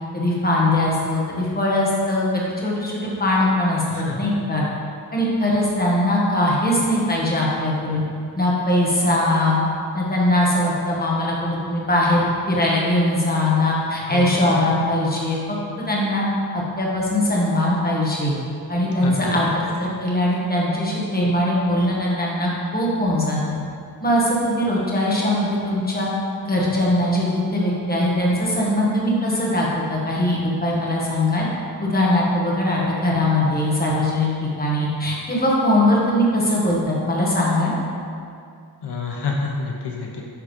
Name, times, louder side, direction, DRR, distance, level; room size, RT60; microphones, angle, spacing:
voice 1, 0.1-4.6 5.1-8.0 8.3-9.6 9.9-15.4 15.8-16.2 16.5-18.3 18.7-23.6 24.0-26.1 26.4-31.5 31.8-37.7, left 1 dB, 20° left, -5 dB, 1.5 m, -21 dB
voice 2, 3.9-4.4 14.1-14.4 18.9-19.4 38.8-40.2, left 4 dB, 75° left, -1 dB, 0.9 m, -28 dB
9.3 x 3.7 x 5.2 m, 2.3 s
wide cardioid pair, 150°, 41 cm